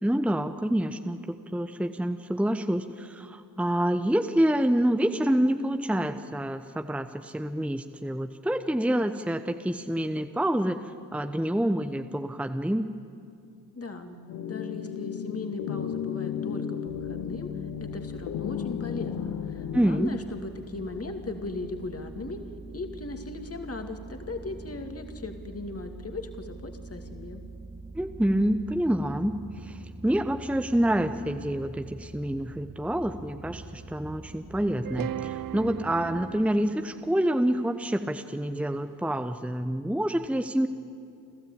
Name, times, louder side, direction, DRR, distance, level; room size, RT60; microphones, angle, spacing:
voice 1, 0.0-12.9 19.7-20.1 27.9-40.7, right 1 dB, 5° right, 8 dB, 0.9 m, -27 dB
voice 2, 13.7-14.2 14.4-17.5 17.8-22.4 22.7-27.4, left 3 dB, 35° left, 5 dB, 2.4 m, -38 dB
sound 1, 14.3-19.8, left 8 dB, 90° left, 1.1 m, -34 dB
sound 2, 16.9-36.5, right 3 dB, 25° right, 1.9 m, -44 dB
sound 3, 34.8-39.0, right 12 dB, 55° right, 0.6 m, -39 dB
29.0 x 13.0 x 8.8 m, 2.5 s
cardioid pair, 60°, 42 cm